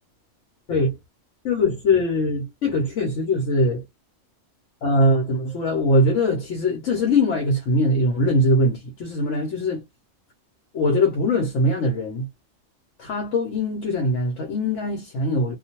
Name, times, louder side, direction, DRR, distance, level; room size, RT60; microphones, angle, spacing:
voice 1, 1.4-3.8 4.8-9.8 10.7-12.3 13.0-15.6, left 1 dB, 70° left, 1.1 m, -21 dB
2.5 x 2.2 x 2.8 m
omnidirectional pair, 1.3 m